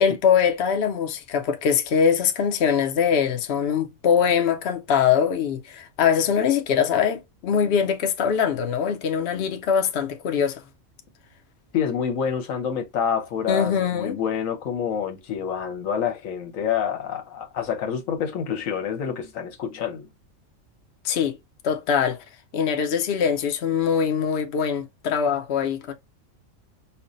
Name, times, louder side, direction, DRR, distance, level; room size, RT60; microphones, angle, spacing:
voice 1, 0.0-10.6 13.5-14.2 21.0-21.4 21.6-22.2 22.5-25.9, left 7 dB, 60° left, 0.9 m, -22 dB
voice 2, 11.7-20.1, left 7 dB, 80° left, 1.3 m, -27 dB
5.6 x 2.2 x 2.5 m
omnidirectional pair, 1.4 m